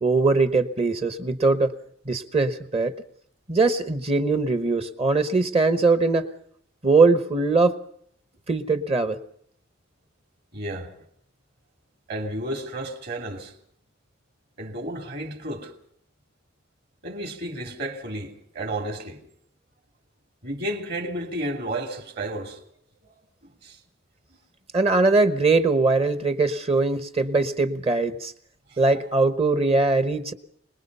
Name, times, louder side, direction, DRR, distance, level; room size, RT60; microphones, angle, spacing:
voice 1, 0.0-1.7 2.1-2.9 3.5-6.3 6.8-7.7 8.5-9.2 24.7-28.3 28.8-30.3, right 3 dB, 30° right, 1.1 m, -21 dB
voice 2, 10.5-10.9 12.1-13.5 14.6-15.7 17.0-19.2 20.4-22.6 23.6-23.8 28.7-28.8, right 1 dB, 50° right, 3.1 m, -32 dB
26.0 x 20.0 x 5.5 m
head